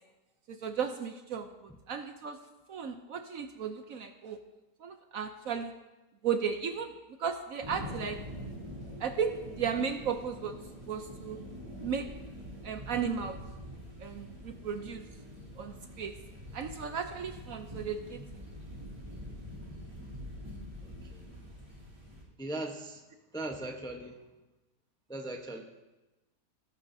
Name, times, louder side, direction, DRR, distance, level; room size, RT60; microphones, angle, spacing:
voice 1, 0.5-2.4 2.7-4.4 4.8-5.7 6.2-6.9 7.2-8.2 9.0-10.5 10.9-11.4 11.8-12.1 12.6-13.4 14.0-15.1 15.6-16.2 16.5-18.2, right 7 dB, 60° right, 7 dB, 1.0 m, -35 dB
sound 1, 7.6-22.2, equal, 20° right, 3.1 m, -45 dB
voice 2, 20.8-21.3 22.4-23.0 23.3-24.2 25.1-25.6, right 2 dB, 5° left, 2 dB, 0.6 m, -39 dB
15.5 x 14.0 x 2.7 m, 1.1 s
omnidirectional pair, 1.8 m